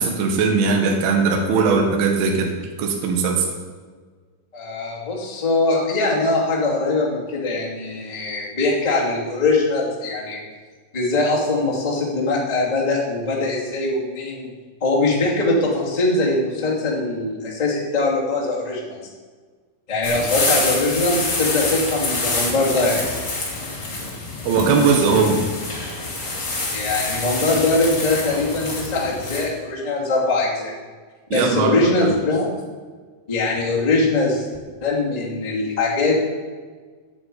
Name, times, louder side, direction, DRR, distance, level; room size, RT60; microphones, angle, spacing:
voice 1, 0.0-3.4 24.5-25.4 31.3-31.7, right 5 dB, 65° right, 2 dB, 3.0 m, -19 dB
voice 2, 4.5-10.4 10.9-14.5 14.8-19.1 19.9-23.1 26.7-30.7 31.3-32.5 33.3-34.5 34.8-36.2, left 2 dB, 15° left, -5 dB, 1.4 m, -22 dB
sound 1, 20.0-29.4, left 2 dB, 35° left, 2.0 m, -26 dB
9.1 x 8.6 x 8.5 m, 1.5 s
omnidirectional pair, 5.3 m